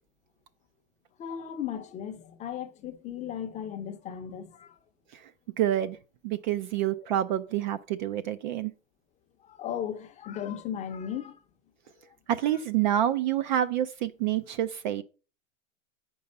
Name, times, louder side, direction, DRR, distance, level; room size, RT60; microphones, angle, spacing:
voice 1, 1.2-4.8 9.4-11.4 12.5-12.6, left 9 dB, 20° left, 0.6 m, -36 dB
voice 2, 5.6-6.0 6.2-8.7 12.3-15.0, right 11 dB, 40° right, 0.4 m, -27 dB
7.8 x 5.4 x 5.3 m
hypercardioid pair, 140°, 38 cm